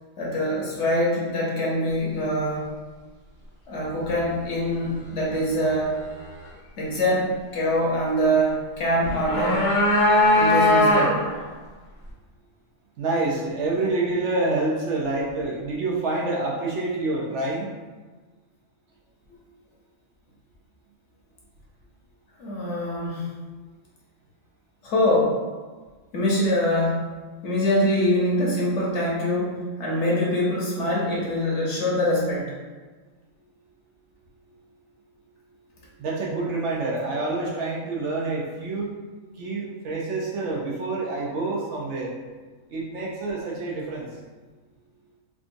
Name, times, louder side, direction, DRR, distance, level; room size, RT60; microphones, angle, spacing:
voice 1, 0.2-2.6 3.7-6.0 6.8-9.6 10.4-11.1 22.4-23.3 24.8-25.4 26.1-27.0 27.4-32.5, equal, 60° left, -5 dB, 1.0 m, -24 dB
sound 1, 9.0-11.4, left 1 dB, 30° left, 0.6 m, -19 dB
voice 2, 13.0-17.7 36.0-38.9 39.3-42.1 42.7-44.1, right 2 dB, 65° right, -3 dB, 0.8 m, -27 dB
3.7 x 2.4 x 2.5 m, 1.3 s
omnidirectional pair, 1.4 m